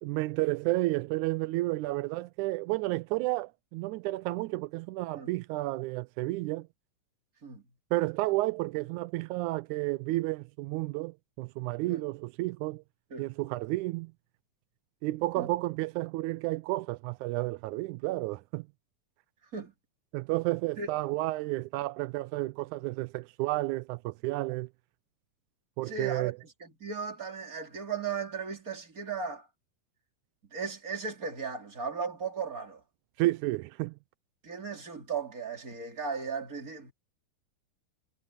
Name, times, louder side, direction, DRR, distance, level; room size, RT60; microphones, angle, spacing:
voice 1, 0.0-6.7 7.9-12.8 13.2-14.1 15.0-18.7 20.1-24.7 25.8-26.4 33.2-34.0, right 19 dB, 90° right, 1.7 m, -31 dB
voice 2, 25.9-26.3 26.6-29.5 30.5-32.8 34.4-36.9, right 5 dB, 25° right, 3.4 m, -36 dB
omnidirectional pair, 4.0 m